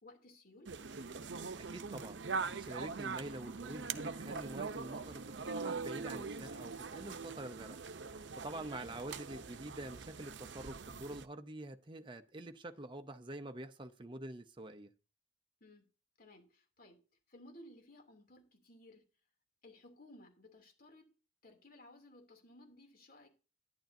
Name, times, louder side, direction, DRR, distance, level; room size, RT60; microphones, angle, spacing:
voice 1, 0.0-0.8 8.8-9.0 15.6-15.8 16.2-17.0 17.3-19.1 19.6-21.1 21.4-23.3, left 1 dB, 50° left, 2.9 m, -58 dB
sound 1, 0.7-11.3, right 4 dB, 70° right, 0.7 m, -42 dB
voice 2, 1.6-14.9, right 1 dB, 25° right, 0.7 m, -46 dB
11.5 x 10.5 x 2.7 m
head